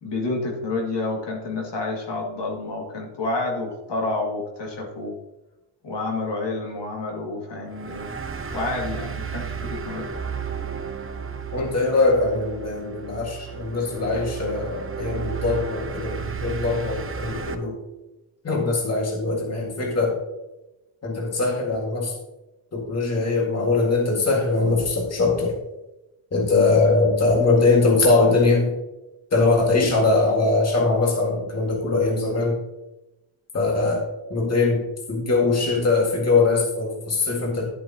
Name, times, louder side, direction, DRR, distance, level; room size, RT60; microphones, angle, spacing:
voice 1, 0.0-5.2 5.8-8.2 8.5-10.1, left 2 dB, 60° left, 0 dB, 2.3 m, -29 dB
sound 1, 7.7-17.5, right 6 dB, 25° right, 0.8 m, -33 dB
voice 2, 11.5-17.8 18.4-20.2 21.0-22.2 22.7-25.5 26.3-28.7 29.3-32.6 33.5-34.0 34.3-37.7, left 3 dB, 30° left, -1 dB, 1.9 m, -21 dB
11.5 x 7.5 x 2.9 m, 0.98 s
wide cardioid pair, 130°, 49 cm